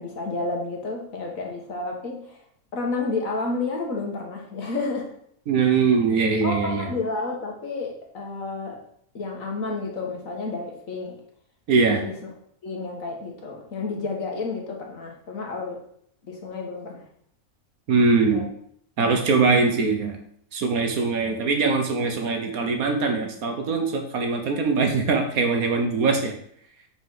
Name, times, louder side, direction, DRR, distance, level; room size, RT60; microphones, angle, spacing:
voice 1, 0.0-2.4 2.7-5.1 6.4-8.8 9.1-11.2 12.0-12.2 12.6-15.8 16.2-17.0 18.3-18.5 21.3-21.4, left 3 dB, 65° left, 1 dB, 1.8 m, -30 dB
voice 2, 5.5-6.9 11.7-12.0 17.9-18.4 19.0-20.2 20.5-26.3, right 4 dB, 75° right, 4 dB, 1.6 m, -22 dB
6.5 x 4.5 x 5.6 m, 0.66 s
omnidirectional pair, 1.5 m